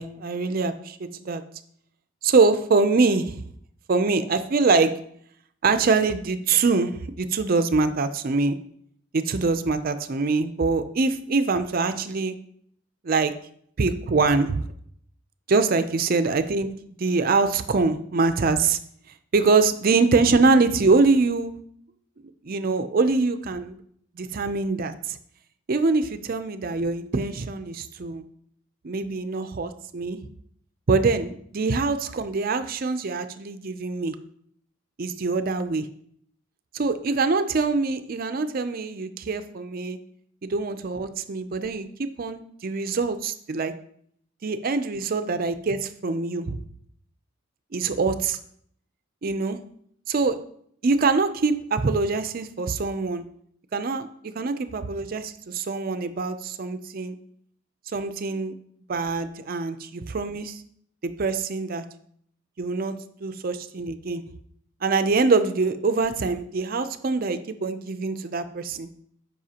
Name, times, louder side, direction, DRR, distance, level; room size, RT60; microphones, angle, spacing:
voice 1, 0.0-1.4 2.2-3.4 3.9-4.9 5.6-8.6 9.1-12.3 13.0-13.3 13.8-14.6 15.5-16.7 17.0-18.8 19.3-21.5 22.4-23.8 24.2-25.2 25.7-28.2 28.8-30.2 30.9-34.1 35.0-35.8 36.7-40.0 40.4-43.7 44.4-46.6 47.7-48.4 49.2-49.6 50.1-50.4 50.8-53.2 53.7-57.2 57.9-58.5 58.9-60.6 61.0-61.8 62.6-62.9 63.2-64.2 64.8-68.9, right 4 dB, 45° right, 10 dB, 0.4 m, -24 dB
12.5 x 5.4 x 2.9 m, 0.65 s
head